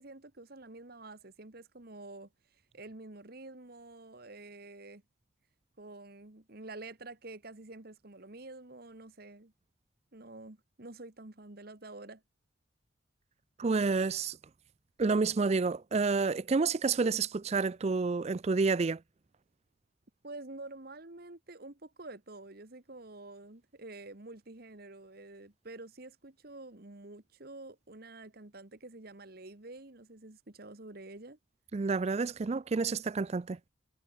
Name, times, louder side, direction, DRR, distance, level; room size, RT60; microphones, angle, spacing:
voice 1, 0.0-5.0 5.8-9.5 10.1-12.2 20.2-31.4, right 2 dB, 50° right, 1.6 m, -48 dB
voice 2, 13.6-14.4 15.0-19.0 31.7-33.6, right 4 dB, 35° right, 0.4 m, -29 dB
head